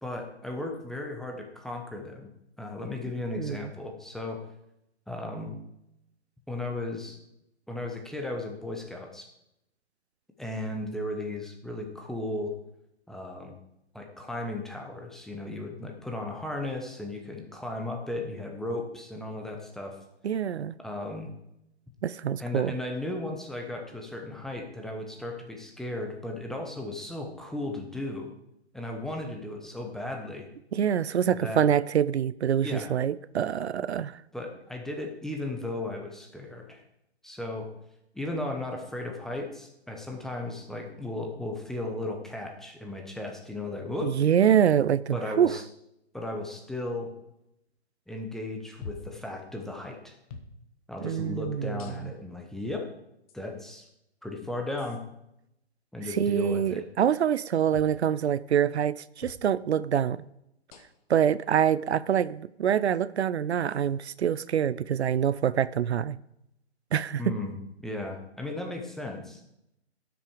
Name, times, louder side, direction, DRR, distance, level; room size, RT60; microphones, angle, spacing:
voice 1, 0.0-2.3 2.6-4.4 5.1-5.6 6.5-7.2 7.7-9.3 10.4-12.5 13.1-13.6 13.9-20.0 20.8-21.3 22.4-28.3 28.7-30.5 31.4-31.6 32.6-33.0 34.3-36.8 37.2-37.7 38.1-44.2 45.1-45.6 46.1-47.1 48.1-50.1 50.9-52.9 53.3-53.9 54.2-55.0 55.9-56.9 67.2-69.4, left 2 dB, ahead, 0.7 m, -35 dB
voice 2, 3.3-3.7 20.2-20.7 22.0-22.8 30.7-34.2 44.0-45.5 51.0-51.8 56.0-60.2 61.1-66.2 66.9-67.2, right 9 dB, 75° right, 0.5 m, -25 dB
sound 1, 48.8-49.2 50.3-50.5 51.8-52.3 53.3-53.4 54.8-55.0 57.7-58.0 59.2-59.5 60.7-61.1 62.2-62.3 63.7-63.9, left 4 dB, 30° left, 1.2 m, -45 dB
12.0 x 6.2 x 4.9 m
figure-of-eight pair, 135°, 33 cm